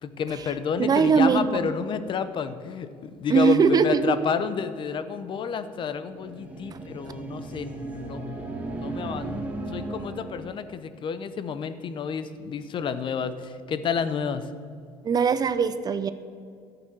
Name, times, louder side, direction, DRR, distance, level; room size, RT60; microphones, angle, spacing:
voice 1, 0.0-8.2 8.7-9.5 9.7-14.5, left 6 dB, 45° left, 12 dB, 0.7 m, -30 dB
voice 2, 0.8-1.7 3.3-4.2 6.7-6.8 15.0-16.1, right 6 dB, 35° right, 12 dB, 0.6 m, -21 dB
sound 1, 6.0-10.6, right 2 dB, 15° right, 1.8 m, -35 dB
11.0 x 6.8 x 7.6 m, 2.3 s
cardioid pair, 105°, 12 cm